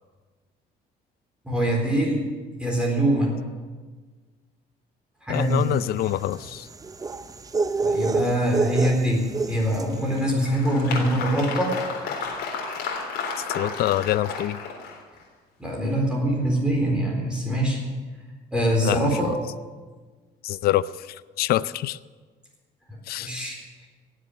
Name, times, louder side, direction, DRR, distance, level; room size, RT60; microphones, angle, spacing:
voice 1, 1.4-2.3 2.6-3.4 5.2-5.7 7.8-11.8 15.6-17.8 18.5-19.3 23.2-23.9, right 1 dB, 5° right, -2 dB, 4.2 m, -24 dB
voice 2, 5.3-6.7 13.4-14.6 18.8-19.1 20.4-22.0 23.1-23.3, left 14 dB, 65° left, 17 dB, 0.5 m, -25 dB
sound 1, 5.5-10.0, right 4 dB, 20° right, 0.6 m, -28 dB
Applause, 9.9-15.2, left 5 dB, 80° left, 3.6 m, -32 dB
18.0 x 7.6 x 9.7 m, 1.4 s
cardioid pair, 110°, 17 cm